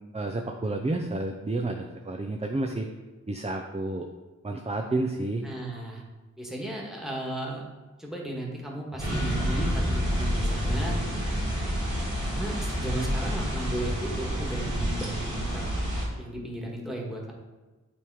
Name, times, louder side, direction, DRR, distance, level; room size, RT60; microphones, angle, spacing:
voice 1, 0.1-2.9 3.3-4.1 4.4-5.5, right 2 dB, 20° right, 3 dB, 0.5 m, -30 dB
voice 2, 5.4-6.0 6.4-7.6 8.0-11.0 12.2-15.6 16.2-17.3, right 1 dB, ahead, -1 dB, 1.6 m, -35 dB
sound 1, 9.0-16.0, equal, 85° right, 2.4 m, -28 dB
8.6 x 3.6 x 4.8 m, 1.2 s
wide cardioid pair, 55°, 30 cm